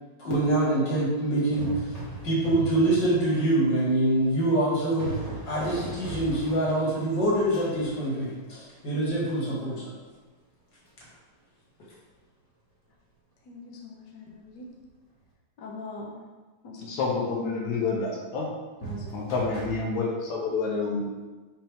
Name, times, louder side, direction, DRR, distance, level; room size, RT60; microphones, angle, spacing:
voice 1, 0.2-9.9, right 1 dB, 40° left, -6 dB, 2.4 m, -25 dB
sound 1, 1.6-3.6 4.1-9.1 10.8-11.1 18.8-19.8, right 3 dB, 25° left, 0.9 m, -38 dB
voice 2, 13.5-14.7 15.6-16.2 16.6-17.0 18.8-19.2, left 2 dB, 65° left, -2 dB, 1.1 m, -42 dB
voice 3, 16.9-18.5 19.1-21.0, left 4 dB, 80° left, -2 dB, 2.3 m, -28 dB
5.9 x 5.8 x 3.6 m, 1.3 s
omnidirectional pair, 3.3 m